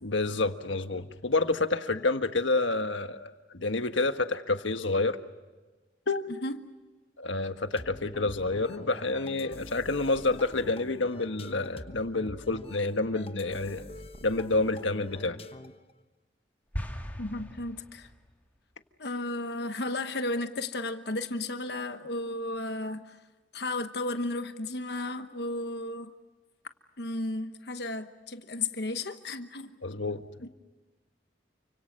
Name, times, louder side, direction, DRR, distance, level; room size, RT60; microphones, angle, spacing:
voice 1, 0.0-5.2 6.1-6.3 7.2-13.8 14.2-15.4 29.8-30.2, left 3 dB, 85° left, 8 dB, 1.5 m, -29 dB
sound 1, 7.8-15.9, left 1 dB, 30° left, 1.1 m, -45 dB
sound 2, 16.7-18.4, equal, 10° left, 2.1 m, -38 dB
voice 2, 17.2-18.1 19.0-23.2 23.5-26.1 27.0-29.8 30.4-30.5, left 2 dB, 60° left, 8 dB, 1.1 m, -34 dB
29.5 x 25.5 x 6.6 m, 1.2 s
head